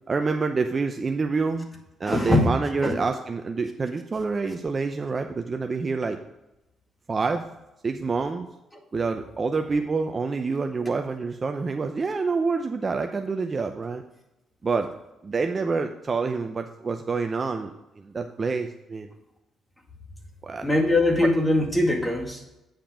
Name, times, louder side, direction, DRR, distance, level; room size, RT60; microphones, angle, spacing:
voice 1, 0.1-1.7 2.0-6.2 7.1-7.5 7.8-8.5 8.9-14.0 14.6-14.9 15.2-19.1 20.4-20.7 21.2-21.3, right 4 dB, 35° right, 6 dB, 0.6 m, -27 dB
voice 2, 2.0-2.5 2.8-2.9 20.6-22.5, left 2 dB, 15° left, 1 dB, 2.0 m, -22 dB
8.9 x 5.7 x 4.9 m, 0.94 s
cardioid pair, 90°, 0 cm